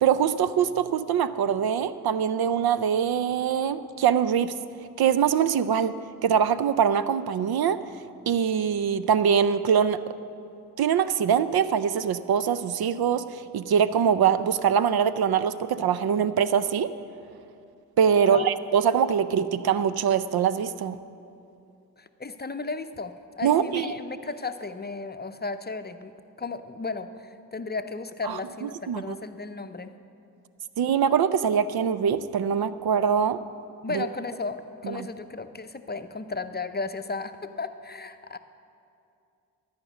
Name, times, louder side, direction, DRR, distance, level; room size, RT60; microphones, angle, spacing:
voice 1, 0.0-4.5 5.0-5.9 6.2-7.8 8.3-10.0 10.8-16.9 18.0-21.0 23.4-23.9 28.3-28.4 28.9-29.2 30.8-33.4 33.9-34.1 34.8-35.1, right 8 dB, 60° right, 14 dB, 0.5 m, -23 dB
voice 2, 18.0-18.5 22.0-29.9 33.8-38.4, left 3 dB, 25° left, 9 dB, 0.6 m, -35 dB
13.5 x 5.2 x 8.2 m, 2.6 s
supercardioid pair, 40°, 42 cm